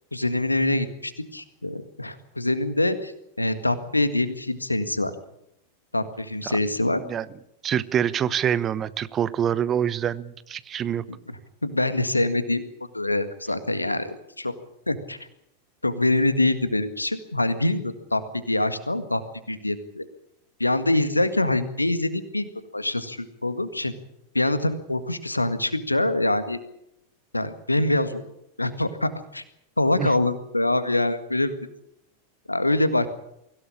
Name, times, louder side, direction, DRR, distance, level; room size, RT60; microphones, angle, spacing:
voice 1, 0.1-3.1 3.4-5.1 5.9-7.0 11.1-11.2 11.6-12.6 12.9-14.5 14.9-15.2 15.8-19.2 19.5-20.0 20.6-22.5 22.7-23.9 24.3-26.6 27.3-28.2 28.6-29.4 29.8-31.6 32.5-33.1, left 2 dB, 85° left, 12 dB, 1.8 m, -24 dB
voice 2, 7.6-11.0 30.0-30.1, right 9 dB, 25° right, 17 dB, 1.0 m, -25 dB
24.0 x 16.5 x 8.7 m, 0.81 s
figure-of-eight pair, 90°, 0 cm